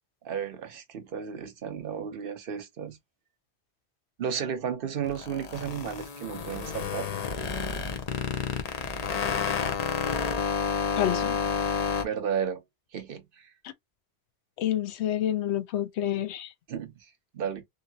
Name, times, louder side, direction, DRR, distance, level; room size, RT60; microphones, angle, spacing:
voice 1, 0.2-3.0 4.2-7.1 12.0-12.6 12.9-13.5 16.7-17.6, right 7 dB, 60° right, 0.8 m, -33 dB
sound 1, 5.0-12.0, left 6 dB, 45° left, 0.6 m, -30 dB
voice 2, 11.0-11.4 14.6-16.5, left 11 dB, 80° left, 0.8 m, -28 dB
2.8 x 2.7 x 2.7 m
omnidirectional pair, 1.1 m